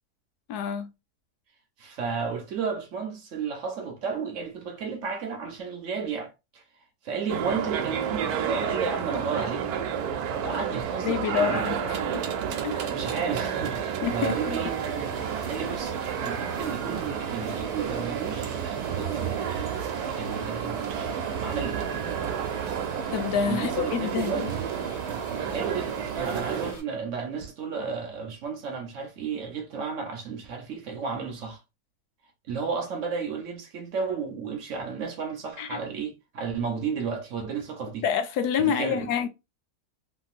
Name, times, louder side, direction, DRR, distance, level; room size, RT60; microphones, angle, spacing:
voice 1, 0.5-0.9 11.0-11.8 12.1-12.2 12.6-12.9 14.0-14.6 23.1-24.5 35.6-35.8 38.0-39.3, left 7 dB, 85° left, 1.2 m, -27 dB
voice 2, 1.8-6.6 7.0-9.7 10.4-12.0 12.9-14.8 15.5-19.7 20.1-21.0 21.4-21.9 23.4-24.5 25.5-31.6 32.5-38.0 38.6-39.1, right 5 dB, 60° right, 0.9 m, -33 dB
sound 1, 7.3-26.7, right 8 dB, 80° right, 1.1 m, -31 dB
sound 2, 14.0-26.8, left 1 dB, 55° left, 1.6 m, -44 dB
2.9 x 2.8 x 2.4 m
omnidirectional pair, 1.6 m